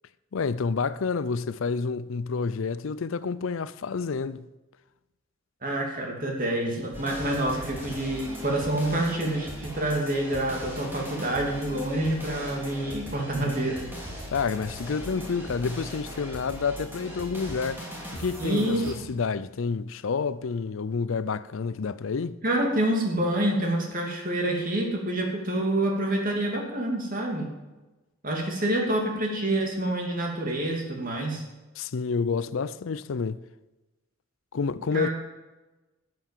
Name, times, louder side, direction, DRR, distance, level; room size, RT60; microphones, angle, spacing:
voice 1, 0.3-4.5 14.3-17.9 18.1-22.4 31.8-33.4 34.5-35.1, left 5 dB, 70° left, 0.5 m, -29 dB
voice 2, 5.6-13.9 18.4-19.1 22.4-27.5 28.2-31.4 34.9-35.1, right 1 dB, 40° right, 2.7 m, -27 dB
sound 1, 6.9-19.0, equal, 10° right, 2.8 m, -39 dB
12.5 x 7.9 x 7.4 m
head